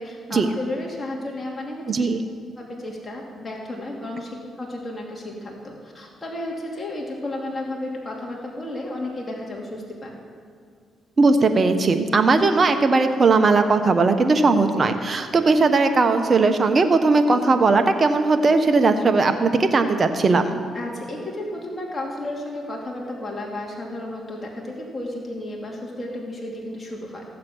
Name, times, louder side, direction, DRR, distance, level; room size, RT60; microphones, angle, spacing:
voice 1, 0.0-1.9 2.6-10.2 20.7-27.2, left 1 dB, 25° left, -2 dB, 2.6 m, -33 dB
voice 2, 1.9-2.2 11.2-20.6, right 3 dB, 40° right, 7 dB, 1.1 m, -18 dB
15.0 x 7.5 x 6.2 m, 2.1 s
supercardioid pair, 65°, 0 cm